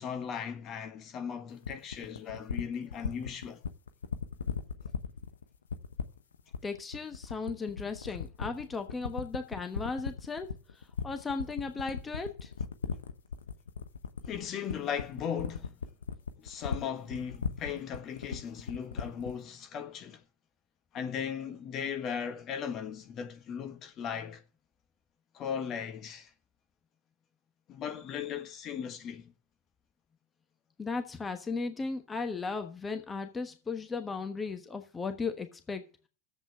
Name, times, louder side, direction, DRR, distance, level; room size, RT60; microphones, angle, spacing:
voice 1, 0.0-3.6 14.3-15.7 16.4-20.2 20.9-24.4 25.3-26.3 27.7-29.3, left 7 dB, 40° left, 1.5 m, -37 dB
sound 1, 1.6-19.4, left 6 dB, 85° left, 0.9 m, -36 dB
voice 2, 6.6-10.6 11.0-12.5 30.8-35.9, left 4 dB, 20° left, 1.2 m, -36 dB
7.9 x 7.8 x 7.4 m
hypercardioid pair, 90°, 0 cm